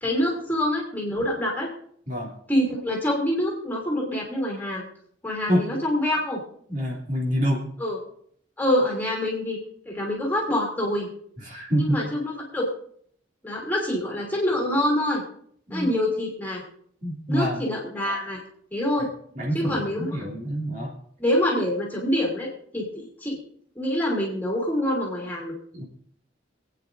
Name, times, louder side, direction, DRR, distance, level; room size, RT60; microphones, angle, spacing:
voice 1, 0.0-1.7 2.5-4.8 5.2-6.4 7.8-8.0 8.6-9.6 9.8-11.1 11.7-12.7 13.4-15.2 15.7-16.6 17.3-18.4 18.7-19.1 19.5-20.2 21.2-23.4 23.7-25.6, left 1 dB, 10° left, -2 dB, 2.9 m, -26 dB
voice 2, 6.7-7.6 11.4-12.0 15.7-15.9 17.0-17.6 19.4-20.9 25.7-25.8, equal, 40° right, -3 dB, 2.7 m, -26 dB
27.0 x 9.1 x 2.6 m, 0.64 s
head